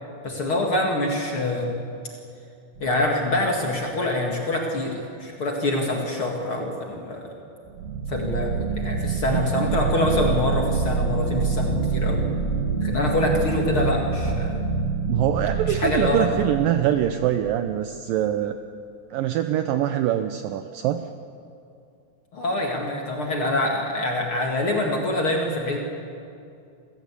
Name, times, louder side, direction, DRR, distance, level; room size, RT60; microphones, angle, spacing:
voice 1, 0.2-1.8 2.8-7.3 8.1-12.2 12.8-14.6 15.7-16.5 22.3-25.8, left 2 dB, 40° left, 0 dB, 2.1 m, -25 dB
sound 1, 2.8-3.3 7.7-17.9, right 4 dB, 65° right, 3.3 m, -26 dB
voice 2, 15.1-18.6 19.1-21.0, right 11 dB, 80° right, 8 dB, 2.0 m, -24 dB
26.5 x 15.5 x 8.4 m, 2.6 s
omnidirectional pair, 4.7 m